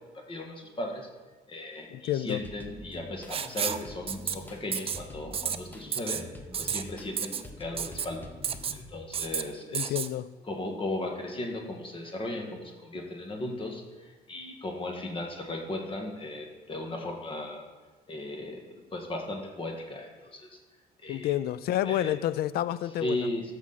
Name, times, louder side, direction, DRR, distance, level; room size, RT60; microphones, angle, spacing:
voice 1, 0.1-1.1 1.5-6.2 6.6-8.3 8.7-10.0 10.5-17.6 18.1-18.6 18.9-20.5 21.0-21.3 21.8-22.1 23.0-23.5, left 1 dB, 30° left, 2 dB, 1.6 m, -36 dB
voice 2, 1.9-2.4 9.7-10.3 21.1-23.3, left 12 dB, 65° left, 17 dB, 0.4 m, -29 dB
sound 1, 2.2-9.6 10.1-11.0 11.6-11.7 12.1-13.1, left 1 dB, 10° left, 1.0 m, -47 dB
Writing, 3.3-3.8 4.1-4.3 4.7-5.0 5.3-5.6 5.9-6.2 6.5-6.8 7.2-7.4 7.8-8.1 8.4-8.8 9.1-9.4 9.7-10.1, right 8 dB, 35° right, 0.5 m, -31 dB
13.5 x 6.1 x 4.1 m, 1.3 s
cardioid pair, 110°, 17 cm